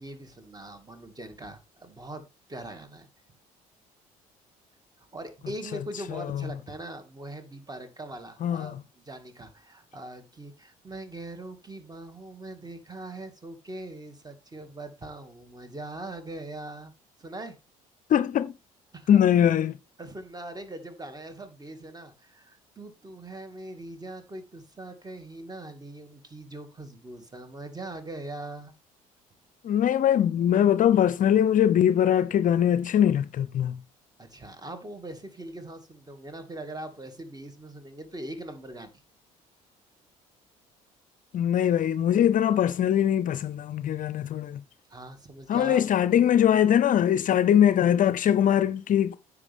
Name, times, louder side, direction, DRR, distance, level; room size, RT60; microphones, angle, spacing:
voice 1, 0.0-3.1 5.1-16.9 17.2-17.6 18.9-19.2 20.0-28.7 34.2-39.0 44.9-45.9, right 1 dB, 20° right, 2.3 m, -41 dB
voice 2, 8.4-8.8 18.1-18.5 19.1-19.8 29.6-33.8 41.3-44.6 45.5-49.2, left 10 dB, 45° left, 0.5 m, -22 dB
9.9 x 6.9 x 3.6 m
hypercardioid pair, 60°, 18 cm